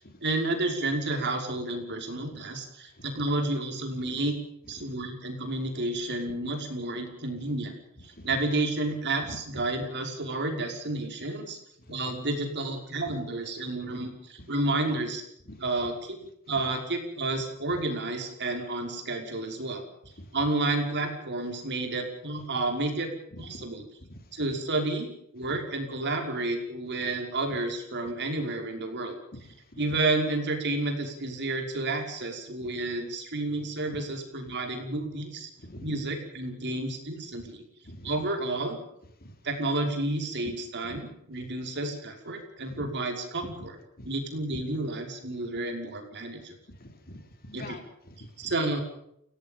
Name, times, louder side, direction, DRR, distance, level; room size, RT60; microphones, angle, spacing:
voice 1, 0.2-4.4 4.7-7.7 8.0-11.6 11.9-15.2 15.6-16.2 16.5-19.8 20.3-23.1 23.4-23.9 24.3-29.2 29.8-35.5 35.8-37.6 38.0-38.8 39.4-43.8 44.1-46.5 47.5-47.8 48.4-48.8, right 2 dB, 55° right, 4 dB, 5.5 m, -31 dB
voice 2, 9.3-9.6 11.8-12.0 15.5-15.6 20.2-20.3 23.3-23.7 24.0-24.2 29.3-29.4 29.7-29.8 32.6-32.7 35.6-36.0 37.4-37.5 37.9-38.1 39.2-39.3 40.9-41.0 42.7-42.9 43.4-43.5 44.0-44.1 46.7-47.8 48.1-48.5, left 1 dB, 45° left, 6 dB, 3.7 m, -45 dB
29.0 x 18.5 x 5.5 m, 0.73 s
head